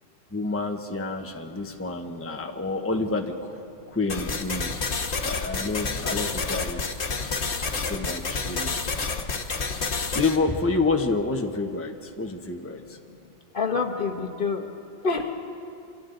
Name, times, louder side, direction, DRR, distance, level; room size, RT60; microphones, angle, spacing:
voice 1, 0.3-3.6 3.9-4.8 5.2-6.8 7.8-8.8 10.1-13.0, left 3 dB, 15° left, 3 dB, 1.0 m, -28 dB
sound 1, 4.1-10.4, left 4 dB, 85° left, 1.5 m, -29 dB
voice 2, 13.5-14.6 15.0-15.3, left 4 dB, 55° left, 3 dB, 1.5 m, -26 dB
29.0 x 26.5 x 3.9 m, 2.6 s
omnidirectional pair, 1.1 m